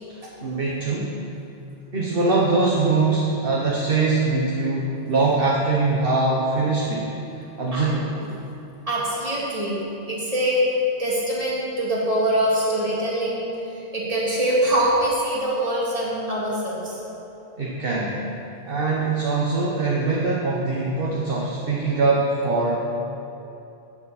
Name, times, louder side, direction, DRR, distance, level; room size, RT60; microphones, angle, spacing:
voice 1, 0.4-1.2 1.9-7.1 7.6-8.1 17.6-18.2 18.7-22.8, right 3 dB, 55° right, -4 dB, 1.2 m, -22 dB
voice 2, 8.9-9.8 10.1-17.0, equal, 35° right, -6 dB, 2.4 m, -24 dB
12.5 x 8.5 x 4.2 m, 2.9 s
omnidirectional pair, 1.1 m